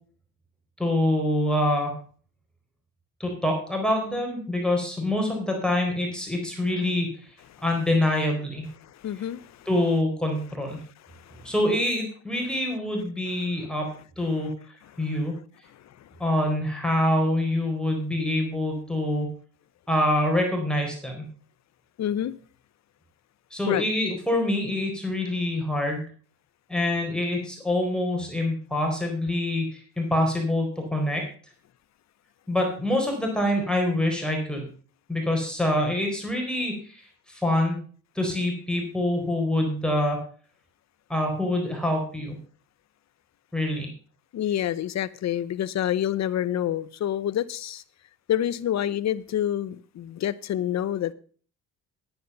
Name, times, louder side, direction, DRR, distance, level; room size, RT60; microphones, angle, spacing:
voice 1, 0.8-2.0 3.2-7.1 7.6-8.7 9.7-10.8 11.4-13.9 14.2-14.5 15.0-15.3 16.2-19.3 19.9-21.3 23.5-26.0 26.7-31.2 32.5-34.7 35.1-37.0 37.3-37.8 38.1-40.2 41.1-42.4 43.5-43.9, left 1 dB, 5° left, 4.1 m, -25 dB
voice 2, 8.8-9.7 10.8-11.5 14.8-15.1 15.7-16.1 22.0-22.3 23.7-23.8 44.3-47.8 48.3-51.1, left 11 dB, 60° left, 0.8 m, -28 dB
10.5 x 9.5 x 5.5 m
cardioid pair, 90°, 30 cm